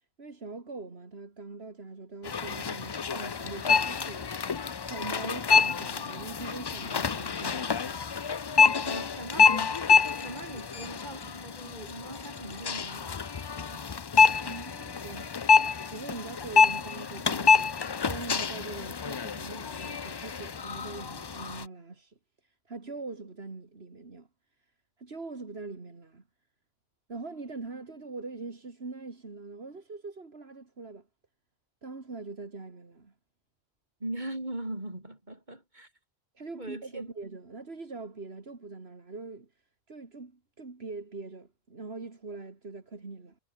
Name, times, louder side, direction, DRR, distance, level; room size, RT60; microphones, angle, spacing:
voice 1, 0.2-4.3 4.8-8.1 14.4-15.3 15.9-17.7 18.0-22.2 22.4-24.3 25.0-26.2 27.1-31.1 31.8-33.1 36.3-39.5 39.9-43.4, right 3 dB, 75° right, 2.8 m, -42 dB
sound 1, 2.2-21.7, left 6 dB, 40° left, 0.4 m, -27 dB
voice 2, 8.8-13.1 13.5-13.9 34.0-35.9 36.6-37.1, right 1 dB, 45° right, 6.3 m, -40 dB
omnidirectional pair, 1.1 m